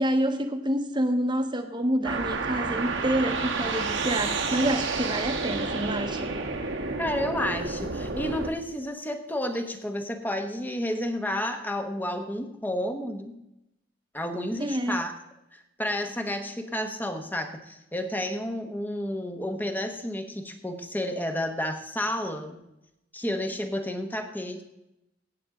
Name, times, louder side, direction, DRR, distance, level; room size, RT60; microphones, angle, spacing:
voice 1, 0.0-6.3 14.6-15.0, right 1 dB, 25° right, 6 dB, 1.1 m, -27 dB
sound 1, 2.0-8.5, right 4 dB, 75° right, 1.4 m, -30 dB
voice 2, 7.0-13.4 14.1-15.1 15.5-22.6 23.1-24.6, left 1 dB, 10° left, 6 dB, 1.1 m, -31 dB
15.5 x 8.5 x 3.8 m, 0.87 s
head